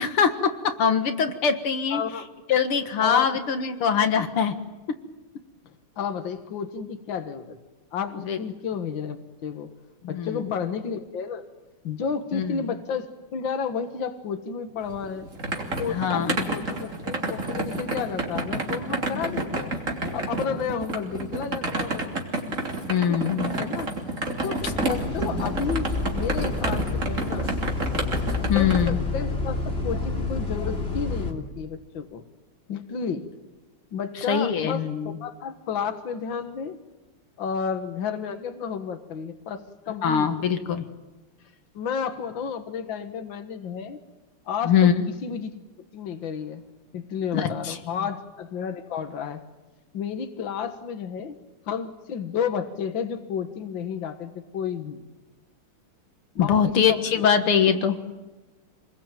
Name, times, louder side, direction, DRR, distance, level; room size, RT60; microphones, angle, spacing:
voice 1, 0.0-2.0 2.5-4.5 8.3-8.4 10.0-10.5 12.3-12.6 15.9-16.5 19.1-19.2 22.9-23.6 28.5-29.0 34.3-35.2 40.0-40.9 44.7-44.9 47.3-47.8 56.4-58.0, left 7 dB, 80° left, 8 dB, 2.5 m, -23 dB
voice 2, 1.9-2.3 3.0-3.3 6.0-7.6 7.9-9.7 10.1-11.4 11.8-15.3 15.8-19.7 20.1-22.1 23.1-23.2 23.5-23.9 24.4-27.5 28.5-32.2 32.7-33.3 33.9-36.8 37.4-40.3 41.7-44.0 44.5-44.9 45.2-45.5 45.9-46.6 46.9-49.4 49.9-51.4 51.7-55.0 56.4-57.3, left 6 dB, 65° left, 8 dB, 2.3 m, -31 dB
sound 1, 14.9-28.9, right 2 dB, 35° right, 3.5 m, -30 dB
Bus, 24.6-31.3, left 3 dB, 25° left, 3.3 m, -29 dB
27.5 x 21.0 x 9.2 m, 1.1 s
omnidirectional pair, 2.4 m